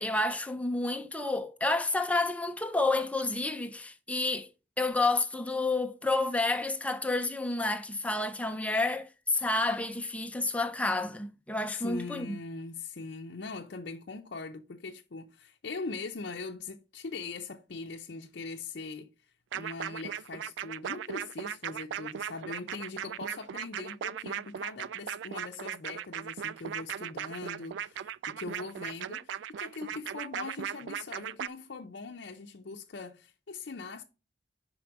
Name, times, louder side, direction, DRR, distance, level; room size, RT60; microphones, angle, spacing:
voice 1, 0.0-4.5 4.8-12.3, left 2 dB, 10° left, 0.6 m, -30 dB
voice 2, 11.7-34.0, left 4 dB, 65° left, 0.6 m, -41 dB
sound 1, 19.5-31.5, right 9 dB, 70° right, 0.3 m, -37 dB
5.2 x 4.9 x 5.9 m
head